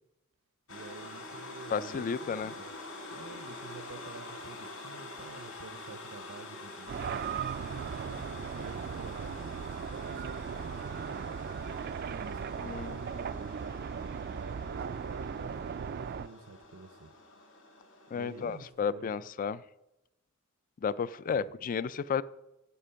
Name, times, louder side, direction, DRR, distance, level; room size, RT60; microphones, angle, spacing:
sound 1, 0.7-18.7, left 2 dB, 85° left, 1.9 m, -46 dB
voice 1, 0.7-2.7 3.1-8.3 8.5-17.1 18.1-19.1 21.3-21.5, right 4 dB, 85° right, 8 dB, 0.7 m, -49 dB
voice 2, 1.7-2.5 12.6-13.0 18.1-19.6 20.8-22.2, left 6 dB, 40° left, 19 dB, 0.3 m, -32 dB
sound 2, 6.9-16.3, right 7 dB, 50° right, 0.3 m, -37 dB
10.0 x 8.2 x 5.7 m, 0.94 s
head